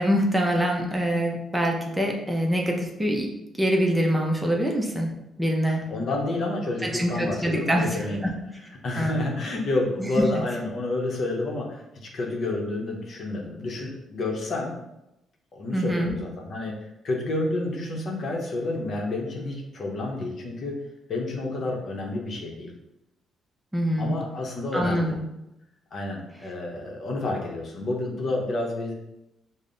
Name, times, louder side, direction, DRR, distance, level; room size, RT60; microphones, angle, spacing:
voice 1, 0.0-3.3 3.6-5.1 5.4-5.8 6.8-8.3 8.9-9.2 15.7-16.2 23.7-24.1 24.7-25.3, equal, 10° right, 0 dB, 0.6 m, -24 dB
voice 2, 5.7-8.3 8.8-14.7 15.5-16.7 17.0-20.7 21.1-22.7 24.0-25.1 25.9-28.9, left 2 dB, 55° left, 0 dB, 0.8 m, -29 dB
5.2 x 2.1 x 2.6 m, 0.89 s
cardioid pair, 90°, 0 cm